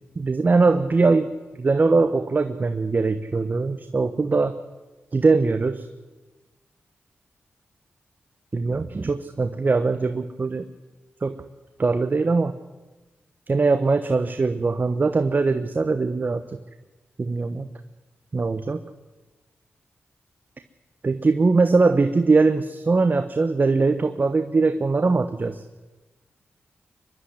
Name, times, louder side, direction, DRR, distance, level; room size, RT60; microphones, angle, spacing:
voice 1, 0.2-1.3 1.6-4.6 5.1-5.9 8.5-10.6 11.2-11.3 11.8-12.5 13.5-16.4 17.2-17.7 18.3-18.8 21.0-25.6, right 3 dB, 45° right, 9 dB, 1.1 m, -21 dB
24.0 x 12.0 x 9.9 m, 1.2 s
cardioid pair, 60°, 4 cm